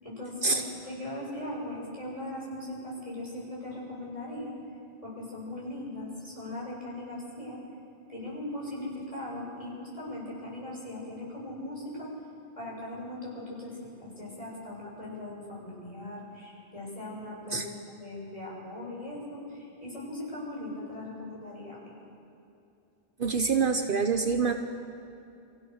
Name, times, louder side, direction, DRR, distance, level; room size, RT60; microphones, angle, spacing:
voice 1, 0.0-4.5 5.0-7.6 8.1-12.1 12.6-17.7 18.0-22.0, left 1 dB, 35° left, -6 dB, 7.2 m, -39 dB
voice 2, 23.2-24.5, right 5 dB, 55° right, 6 dB, 1.0 m, -26 dB
26.0 x 15.5 x 6.6 m, 2.7 s
omnidirectional pair, 1.1 m